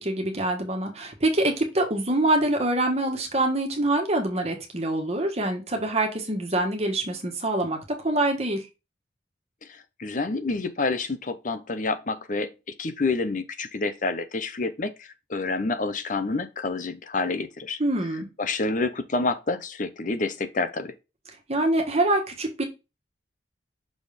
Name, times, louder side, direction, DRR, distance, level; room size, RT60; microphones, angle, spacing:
voice 1, 0.0-8.6 17.8-18.3 21.5-22.6, right 1 dB, 35° right, 1.5 m, -25 dB
voice 2, 9.7-12.5 12.8-17.8 18.4-20.9, left 3 dB, 45° left, 0.8 m, -28 dB
6.3 x 3.8 x 5.0 m
head